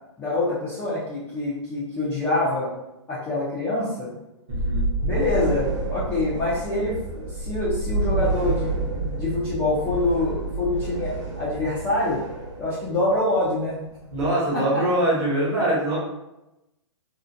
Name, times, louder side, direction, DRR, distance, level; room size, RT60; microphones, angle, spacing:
voice 1, 0.2-2.7 3.1-4.1 5.0-8.7 9.0-12.2 12.6-13.8 14.5-14.8, left 2 dB, 10° left, -11 dB, 0.3 m, -25 dB
voice 2, 4.5-4.9 14.1-16.0, right 1 dB, 20° right, -5 dB, 0.7 m, -23 dB
sound 1, 4.5-14.3, right 2 dB, 75° right, 1.0 m, -29 dB
2.5 x 2.1 x 2.5 m, 0.92 s
hypercardioid pair, 155°, 16 cm